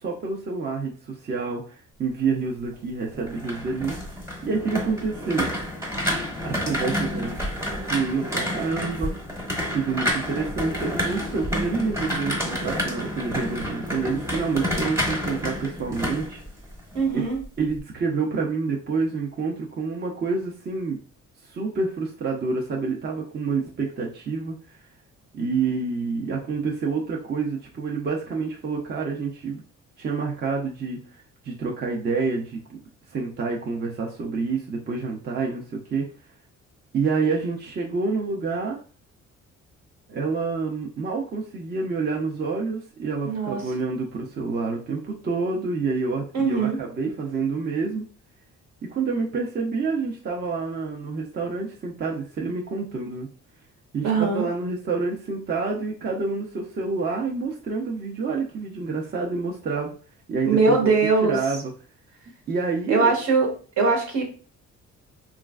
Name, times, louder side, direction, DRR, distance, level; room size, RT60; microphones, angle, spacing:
voice 1, 0.0-3.9 4.4-5.5 6.4-7.6 7.9-9.1 9.7-16.4 17.1-17.2 17.6-21.0 21.5-24.6 25.3-29.6 30.0-31.0 31.4-32.8 33.1-36.1 36.9-38.8 40.1-48.0 48.9-53.3 53.9-59.9 60.3-60.9 61.2-61.7 62.5-63.1, right 4 dB, 35° right, -1 dB, 0.6 m, -28 dB
sound 1, 3.1-17.1 17.4-17.8, equal, 10° right, 0.9 m, -29 dB
voice 2, 16.9-17.4 43.2-43.6 46.3-46.8 54.0-54.5 60.4-61.4 62.9-63.5 63.8-64.2, right 4 dB, 70° right, 1 dB, 1.1 m, -21 dB
3.0 x 2.4 x 2.3 m, 0.39 s
cardioid pair, 90°, 30 cm